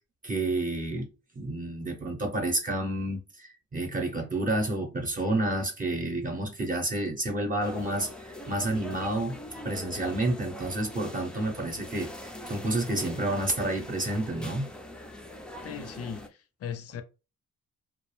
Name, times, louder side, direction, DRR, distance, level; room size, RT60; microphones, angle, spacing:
voice 1, 0.2-1.1 1.3-14.7, right 1 dB, 25° right, 0.8 m, -30 dB
sound 1, 7.6-16.3, left 1 dB, 5° left, 0.4 m, -42 dB
voice 2, 15.6-17.0, left 7 dB, 50° left, 0.6 m, -38 dB
2.3 x 2.0 x 3.1 m
cardioid pair, 90°, 30 cm